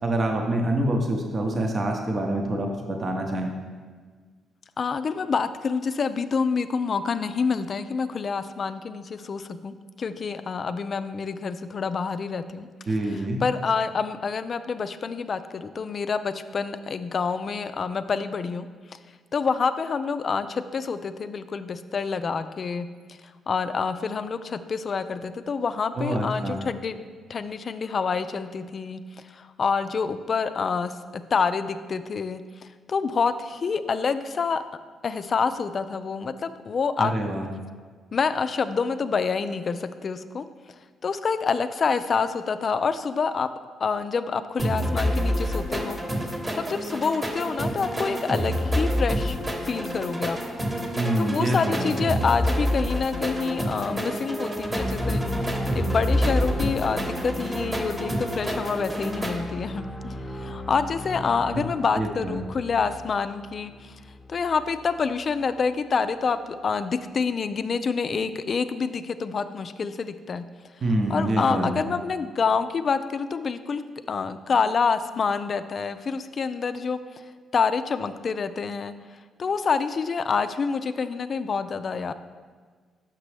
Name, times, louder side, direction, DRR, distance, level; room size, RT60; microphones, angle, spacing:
voice 1, 0.0-3.5 12.9-13.4 25.9-26.6 37.0-37.5 51.0-51.9 61.9-62.4 70.8-71.8, right 1 dB, 45° right, 2 dB, 0.8 m, -26 dB
voice 2, 4.8-12.7 13.1-18.7 19.3-22.9 23.5-27.0 27.3-29.0 29.3-32.4 32.9-34.6 35.0-37.1 38.1-40.5 41.0-43.5 43.8-46.0 46.6-50.4 51.2-55.2 55.7-63.9 64.3-70.5 71.1-73.8 74.1-77.0 77.5-78.9 79.4-82.1, left 5 dB, 50° left, 12 dB, 0.3 m, -27 dB
sound 1, 44.6-59.4, equal, 20° right, 1.0 m, -28 dB
sound 2, 54.6-64.6, equal, 5° left, 0.7 m, -34 dB
6.0 x 5.9 x 3.3 m, 1.5 s
supercardioid pair, 55°, 0 cm